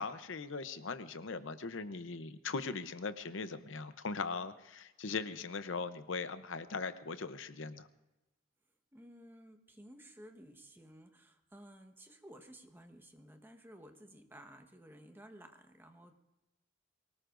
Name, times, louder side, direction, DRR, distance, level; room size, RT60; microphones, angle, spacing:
voice 1, 0.0-7.9, left 4 dB, 70° left, 11 dB, 0.8 m, -40 dB
voice 2, 8.9-16.2, equal, 10° right, 5 dB, 1.2 m, -55 dB
23.5 x 19.0 x 2.6 m, 1.0 s
head